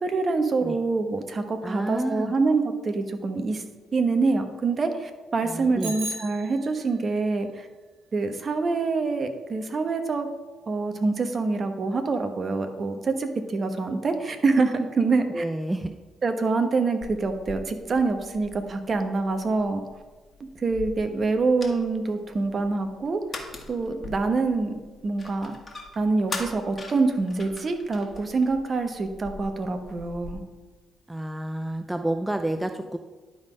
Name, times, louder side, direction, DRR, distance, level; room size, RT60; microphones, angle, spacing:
voice 1, 0.0-3.6 3.9-7.7 8.1-10.3 10.7-15.4 16.2-19.8 20.4-23.2 23.7-24.7 25.0-25.6 26.0-30.4, right 3 dB, 45° right, 7 dB, 1.0 m, -25 dB
voice 2, 1.6-2.3 5.4-5.9 15.3-15.9 31.1-33.0, right 1 dB, 10° right, 6 dB, 0.5 m, -29 dB
Bicycle bell, 5.8-7.1, right 1 dB, 90° right, 1.3 m, -36 dB
sound 1, 17.0-30.3, left 3 dB, 30° left, 1.6 m, -42 dB
11.0 x 3.9 x 5.1 m, 1.3 s
cardioid pair, 75°, 0 cm